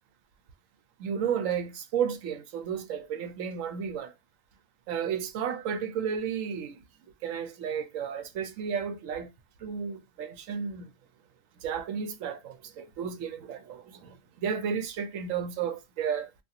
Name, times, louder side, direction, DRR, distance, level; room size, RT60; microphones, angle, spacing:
voice 1, 1.0-4.1 4.9-6.8 7.2-9.3 9.6-10.9 11.6-16.3, right 7 dB, 90° right, 1.0 m, -32 dB
2.5 x 2.4 x 2.7 m
omnidirectional pair, 1.3 m